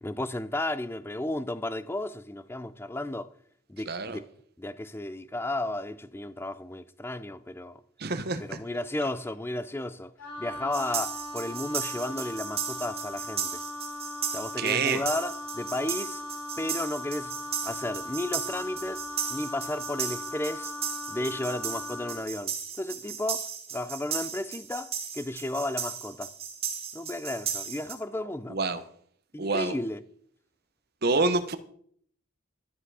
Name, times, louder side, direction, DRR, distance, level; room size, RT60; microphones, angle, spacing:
voice 1, 0.0-3.3 3.7-4.2 4.6-7.8 8.4-10.1 10.4-13.6 14.3-16.2 16.6-17.4 17.6-20.7 21.1-26.3 26.9-28.6 29.3-30.0, left 1 dB, 10° left, 0.4 m, -33 dB
voice 2, 3.9-4.2 8.0-8.6 14.6-15.0 28.5-28.8 29.4-29.8 31.0-31.6, right 3 dB, 45° right, 0.9 m, -27 dB
Wind instrument woodwind instrument, 10.2-22.3, left 1 dB, 65° left, 3.7 m, -39 dB
sound 1, 10.7-27.9, right 7 dB, 30° right, 1.8 m, -36 dB
12.5 x 10.0 x 4.8 m
head